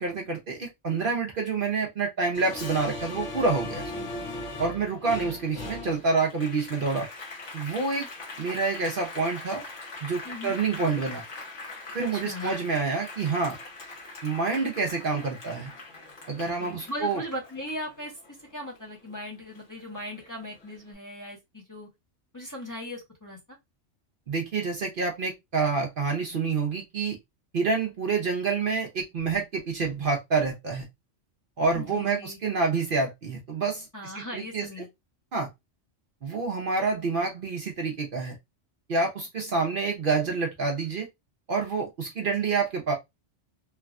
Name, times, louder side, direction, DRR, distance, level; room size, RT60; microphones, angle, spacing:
voice 1, 0.0-3.8 4.6-7.1 7.5-8.1 8.4-9.6 10.0-11.2 11.9-13.6 14.2-15.7 16.3-17.2 24.3-27.2 27.5-30.8 31.6-34.8 35.3-35.5 36.2-38.4 38.9-41.1 41.5-42.9, right 4 dB, 55° right, 0.7 m, -28 dB
Applause, 2.3-19.2 19.6-20.7, left 2 dB, 70° left, 1.5 m, -40 dB
voice 2, 3.9-4.3 5.2-5.4 10.2-10.6 12.0-12.6 16.6-18.2 18.5-21.9 22.3-23.6 31.7-32.4 33.9-34.9 42.3-42.6, left 1 dB, 20° left, 0.8 m, -39 dB
3.2 x 2.2 x 2.4 m
omnidirectional pair, 1.2 m